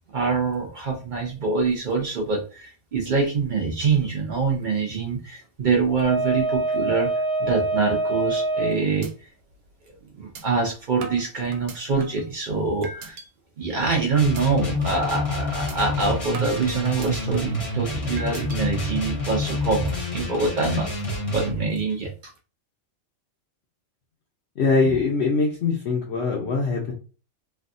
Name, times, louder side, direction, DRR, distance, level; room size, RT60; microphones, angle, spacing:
voice 1, 0.1-9.1 10.2-13.2 13.6-20.9 21.3-22.1, right 4 dB, 55° right, 1 dB, 0.5 m, -25 dB
sound 1, 6.0-8.8, right 2 dB, 25° right, 0.8 m, -24 dB
sound 2, 8.4-8.7 9.0-9.1 9.5-9.6 10.4-10.5 11.0-12.3 12.8-13.3 13.7-13.9 14.4-14.5 14.9-15.1 15.7-15.8 16.3-17.6 18.2-18.6, right 3 dB, 90° right, 1.1 m, -39 dB
sound 3, 14.1-21.6, left 1 dB, 30° left, 0.8 m, -28 dB
voice 2, 24.6-26.9, left 4 dB, 60° left, -1 dB, 0.8 m, -22 dB
3.4 x 2.3 x 2.6 m, 0.36 s
omnidirectional pair, 1.5 m